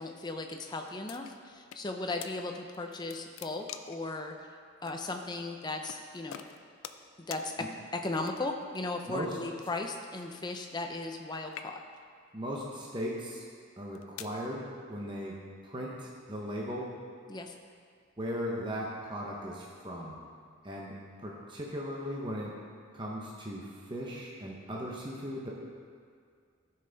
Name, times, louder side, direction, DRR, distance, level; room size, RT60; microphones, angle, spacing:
voice 1, 0.0-4.3 4.8-6.4 7.3-11.8 17.3-17.6, left 2 dB, 20° left, 3 dB, 0.6 m, -37 dB
sound 1, 1.1-1.8 2.2-2.3 2.7-4.1 4.9-5.0 5.9-6.0 6.3-7.1 7.3-7.5 8.2-8.6 9.6-11.2 11.5-12.1 12.8-13.0 13.7-14.4, left 9 dB, 75° left, 0.4 m, -46 dB
voice 2, 9.1-9.4 12.3-13.4 13.8-16.9 18.2-20.2 20.6-22.5 22.9-25.5, equal, 20° right, -3 dB, 0.8 m, -38 dB
13.0 x 5.7 x 4.0 m, 2.1 s
head